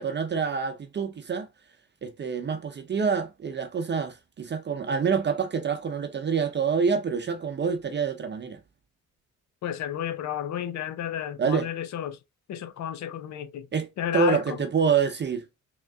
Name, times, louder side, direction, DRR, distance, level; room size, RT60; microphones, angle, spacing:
voice 1, 0.0-1.5 2.0-8.6 11.4-11.7 13.7-13.9 14.1-15.4, right 6 dB, 35° right, 0.7 m, -26 dB
voice 2, 9.6-12.2 12.5-13.7 14.0-14.6, left 10 dB, 65° left, 0.7 m, -32 dB
3.7 x 3.0 x 3.4 m
cardioid pair, 90°, 30 cm